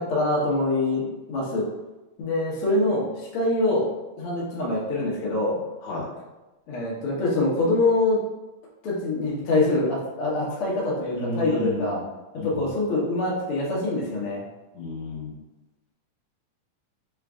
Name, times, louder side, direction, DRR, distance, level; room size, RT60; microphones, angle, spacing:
voice 1, 0.0-1.7 2.2-3.9 4.2-5.6 6.7-8.2 8.8-12.0 12.4-14.4, left 2 dB, 85° left, -5 dB, 1.2 m, -24 dB
voice 2, 11.1-12.0 12.4-12.7 14.7-15.4, left 3 dB, 65° left, -4 dB, 2.0 m, -32 dB
5.2 x 2.5 x 3.5 m, 1.1 s
omnidirectional pair, 4.0 m